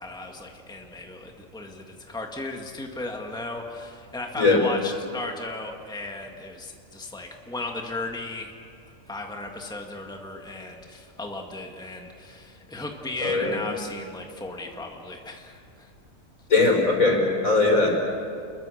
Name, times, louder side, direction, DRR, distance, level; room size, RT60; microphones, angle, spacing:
voice 1, 0.0-8.5 9.1-15.9, left 2 dB, 5° left, 2 dB, 1.8 m, -36 dB
voice 2, 13.2-13.6 16.5-17.9, left 3 dB, 75° left, 0 dB, 5.4 m, -20 dB
29.5 x 22.0 x 6.5 m, 2.5 s
omnidirectional pair, 1.4 m